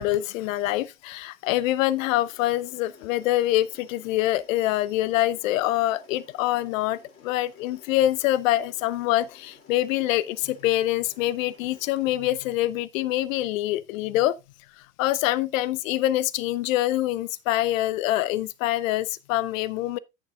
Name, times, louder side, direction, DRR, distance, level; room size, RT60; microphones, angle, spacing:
voice 1, 0.0-14.4 15.0-20.0, left 15 dB, 70° left, 0.9 m, -25 dB
Mechanisms, 2.0-12.1, left 4 dB, 30° left, 3.9 m, -55 dB
15.0 x 6.8 x 2.4 m
hypercardioid pair, 85°, 42 cm